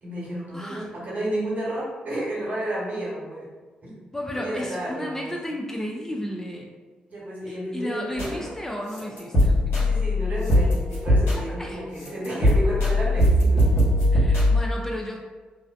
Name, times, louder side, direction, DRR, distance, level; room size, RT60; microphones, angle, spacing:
voice 1, 0.0-3.5 3.8-4.0 4.3-5.4 7.1-8.4 9.7-13.8, right 1 dB, 55° right, -6 dB, 1.1 m, -31 dB
voice 2, 0.5-0.9 4.1-6.7 7.5-9.9 11.6-11.8 14.1-15.2, left 1 dB, 15° left, 0 dB, 0.4 m, -33 dB
sound 1, 8.2-8.4 8.9-11.7 12.0-14.6, left 1 dB, 80° left, 0.9 m, -20 dB
2.6 x 2.1 x 2.4 m, 1.3 s
hypercardioid pair, 45°, 3 cm